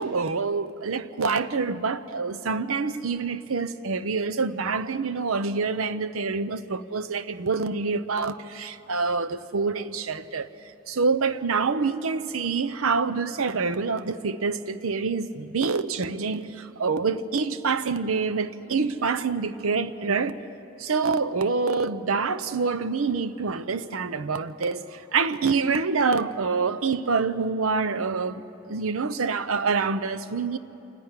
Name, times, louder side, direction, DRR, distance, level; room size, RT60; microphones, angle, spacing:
voice 1, 0.0-10.5 10.9-20.4 20.8-28.4 28.7-30.6, right 4 dB, 80° right, 0.7 m, -26 dB
27.5 x 10.5 x 9.8 m
head